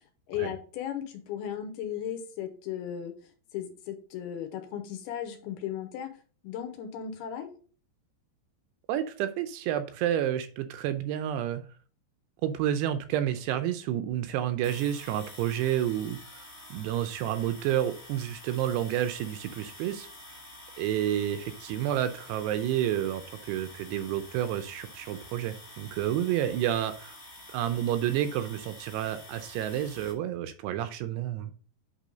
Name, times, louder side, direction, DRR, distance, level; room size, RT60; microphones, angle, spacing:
voice 1, 0.0-3.2 3.5-6.1 6.4-7.5, left 9 dB, 80° left, 6 dB, 2.6 m, -36 dB
voice 2, 8.9-11.6 12.4-20.1 20.8-27.2 27.5-31.5, right 11 dB, 80° right, 10 dB, 2.6 m, -30 dB
sound 1, 14.6-30.1, left 1 dB, 5° right, 1.2 m, -48 dB
8.3 x 3.5 x 5.0 m, 0.40 s
omnidirectional pair, 5.0 m